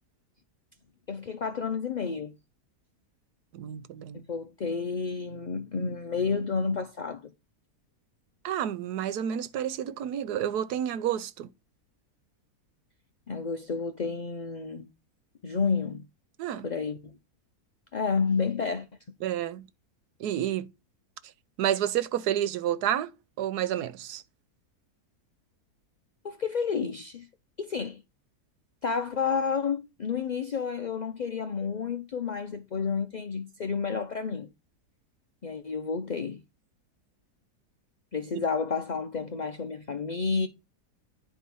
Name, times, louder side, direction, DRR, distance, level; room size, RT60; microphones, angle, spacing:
voice 1, 1.1-2.3 4.1-7.3 13.3-14.9 15.4-16.0 16.6-17.1 17.9-18.9 26.2-27.3 27.6-28.0 28.8-34.5 35.4-36.4 38.1-40.5, left 5 dB, 55° left, 0.4 m, -30 dB
voice 2, 3.5-4.2 8.4-11.5 16.4-16.7 19.2-19.7 20.2-20.7 21.6-23.1 23.4-24.2 38.3-38.4, right 10 dB, 85° right, 1.2 m, -30 dB
10.0 x 4.6 x 5.3 m
omnidirectional pair, 1.7 m